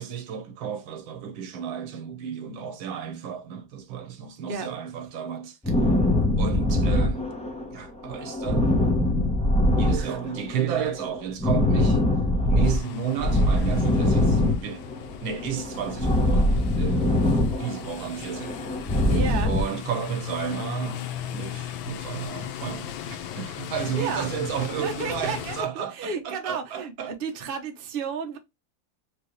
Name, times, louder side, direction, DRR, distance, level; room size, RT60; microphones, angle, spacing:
voice 1, 0.0-5.6 6.4-7.3 7.7-8.7 9.8-12.0 12.5-14.8 15.2-18.5 19.4-27.1, right 8 dB, 85° right, 1.8 m, -32 dB
sound 1, 5.6-7.7 8.0-10.6 10.8-12.8 13.2-15.1 15.4-17.9 18.2-19.6, left 1 dB, 5° left, 0.5 m, -23 dB
sound 2, 12.6-25.6, left 10 dB, 85° left, 1.5 m, -37 dB
voice 2, 19.1-19.5 24.0-24.3 24.8-28.4, right 5 dB, 40° right, 0.9 m, -32 dB
4.8 x 3.2 x 3.1 m
omnidirectional pair, 2.1 m